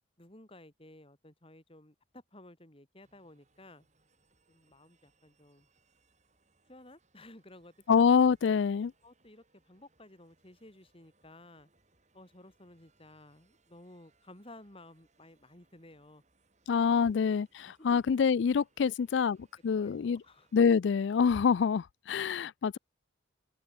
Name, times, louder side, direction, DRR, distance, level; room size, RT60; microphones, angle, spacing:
voice 1, 0.2-3.9 4.5-5.7 6.7-8.0 9.0-11.7 12.1-16.2 16.9-17.1 17.6-18.0 18.8-19.3 19.7-20.5, left 1 dB, 30° left, 3.4 m, -55 dB
sound 1, 3.0-20.6, right 3 dB, 35° right, 7.1 m, -72 dB
voice 2, 7.9-8.9 16.7-19.4 19.6-20.2 20.5-22.8, left 6 dB, 65° left, 0.4 m, -26 dB
open air
head